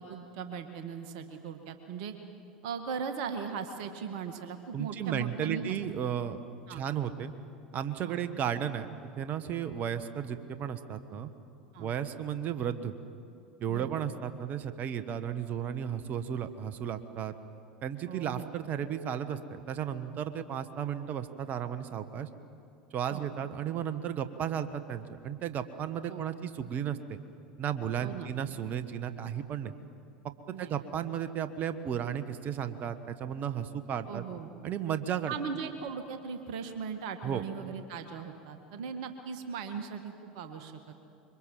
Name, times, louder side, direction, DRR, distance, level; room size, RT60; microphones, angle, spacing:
voice 1, 0.0-2.1 2.6-5.7 6.7-6.8 8.0-8.2 11.7-11.9 13.7-13.9 18.1-18.6 23.1-23.2 26.1-26.2 28.0-28.3 30.5-31.1 34.1-34.5 35.3-40.9, right 6 dB, 60° right, 7 dB, 1.8 m, -39 dB
voice 2, 4.7-6.4 6.7-7.3 7.7-8.9 9.2-11.3 11.8-12.9 13.6-17.3 17.8-22.3 22.9-27.2 27.6-29.7 30.5-34.2 34.6-35.3 37.2-37.4, right 9 dB, 40° right, 11 dB, 1.4 m, -34 dB
26.0 x 24.0 x 7.7 m, 2.6 s
figure-of-eight pair, 80°, 4 cm